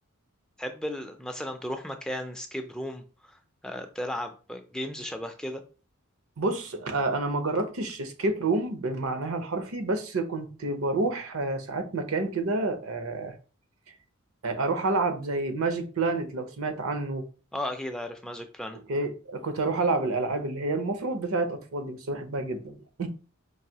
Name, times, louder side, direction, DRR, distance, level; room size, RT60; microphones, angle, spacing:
voice 1, 0.6-5.6 17.5-18.8, left 1 dB, 5° left, 0.4 m, -35 dB
voice 2, 6.4-13.3 14.4-17.2 18.9-23.1, right 3 dB, 75° right, 0.7 m, -29 dB
4.7 x 2.6 x 2.8 m
head